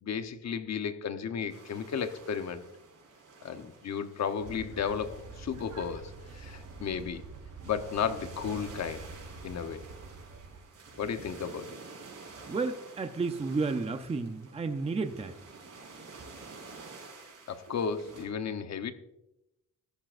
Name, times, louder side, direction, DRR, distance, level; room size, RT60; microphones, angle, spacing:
voice 1, 0.0-2.6 3.4-7.2 7.6-9.1 9.4-9.8 11.0-11.8 17.5-18.9, left 7 dB, 55° left, 8 dB, 1.0 m, -34 dB
sound 1, 1.5-18.2, right 4 dB, 55° right, 4.8 m, -50 dB
sound 2, 4.4-10.6, right 4 dB, 80° right, 3.8 m, -47 dB
voice 2, 12.5-15.4, right 4 dB, 20° right, 7 dB, 0.6 m, -32 dB
15.0 x 13.5 x 2.5 m, 0.89 s
wide cardioid pair, 165°, 31 cm